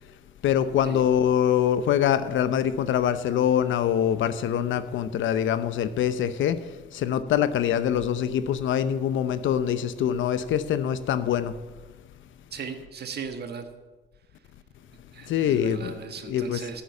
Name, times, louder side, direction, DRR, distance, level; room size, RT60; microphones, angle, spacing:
voice 1, 0.4-6.6 6.9-11.5 15.3-15.9 16.2-16.7, left 9 dB, 75° left, 12 dB, 0.8 m, -24 dB
voice 2, 12.5-13.6 15.1-16.8, right 6 dB, 55° right, 6 dB, 1.6 m, -37 dB
11.5 x 8.8 x 7.0 m, 1.3 s
cardioid pair, 90°, 20 cm